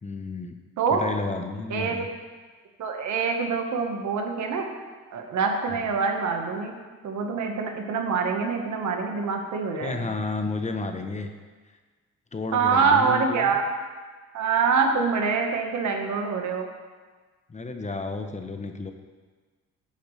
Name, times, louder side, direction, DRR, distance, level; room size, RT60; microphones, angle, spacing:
voice 1, 0.0-0.6 0.9-2.1 9.8-11.3 12.3-13.6 17.5-18.9, left 3 dB, 25° left, 6 dB, 0.9 m, -32 dB
voice 2, 1.7-2.1 2.8-4.6 5.1-6.7 7.0-10.1 12.5-13.6 14.3-16.6, right 5 dB, 70° right, 3 dB, 1.4 m, -25 dB
11.5 x 8.5 x 3.3 m, 1.4 s
cardioid pair, 90°, 30 cm